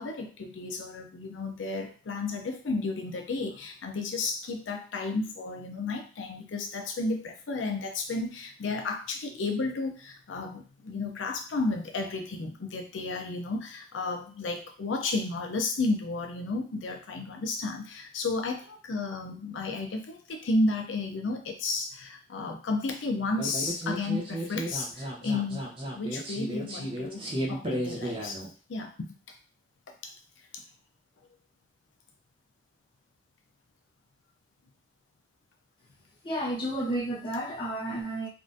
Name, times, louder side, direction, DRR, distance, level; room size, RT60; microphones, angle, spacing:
voice 1, 0.0-28.4 28.7-29.3 30.0-30.1, left 3 dB, 80° left, 3 dB, 0.5 m, -32 dB
sound 1, 23.4-28.5, right 1 dB, 30° right, 0.6 m, -34 dB
voice 2, 36.2-38.3, right 1 dB, 25° left, -5 dB, 0.9 m, -31 dB
3.5 x 2.4 x 2.5 m, 0.37 s
head